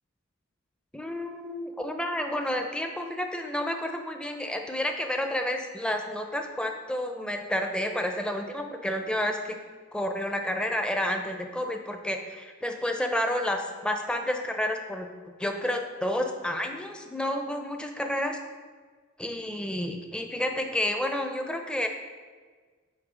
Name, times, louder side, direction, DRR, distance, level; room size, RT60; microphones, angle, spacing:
voice 1, 0.9-9.6 9.9-15.1 15.4-18.4 19.2-21.9, left 1 dB, 5° left, 4 dB, 0.4 m, -30 dB
7.9 x 3.1 x 5.0 m, 1.5 s
head